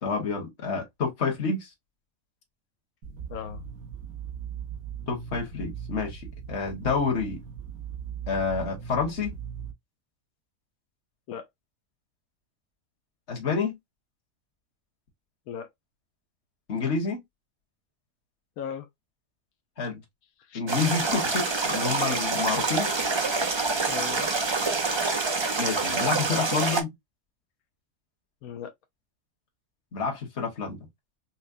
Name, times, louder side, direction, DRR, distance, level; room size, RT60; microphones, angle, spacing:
voice 1, 0.0-1.7 5.1-7.4 8.3-9.3 13.3-13.8 16.7-17.2 19.8-20.0 20.5-22.9 25.6-26.9 29.9-30.8, left 4 dB, 55° left, 1.5 m, -28 dB
sound 1, 3.0-9.7, right 7 dB, 75° right, 1.2 m, -39 dB
voice 2, 3.3-3.6 11.3-11.5 15.5-15.7 18.6-18.9 20.4-20.6 23.9-24.3 28.4-28.7, left 8 dB, 85° left, 1.1 m, -37 dB
sound 2, 20.7-26.8, right 3 dB, 45° right, 0.3 m, -26 dB
5.7 x 2.1 x 2.4 m
omnidirectional pair, 1.5 m